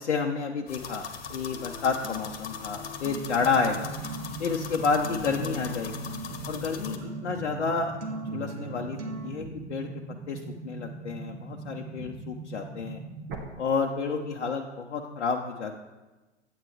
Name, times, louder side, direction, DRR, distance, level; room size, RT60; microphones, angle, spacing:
voice 1, 0.0-3.9 4.4-6.1 6.5-8.0 8.3-9.9 10.3-13.0 13.6-15.8, left 5 dB, 70° left, 1 dB, 0.8 m, -30 dB
sound 1, 0.7-7.0, left 7 dB, 55° left, 1.3 m, -40 dB
Acoustic guitar, 1.3-9.3, right 2 dB, 80° right, 1.4 m, -40 dB
sound 2, 3.3-13.3, right 3 dB, 30° right, 1.6 m, -41 dB
9.1 x 8.9 x 3.1 m, 1.2 s
figure-of-eight pair, 105°, 35 cm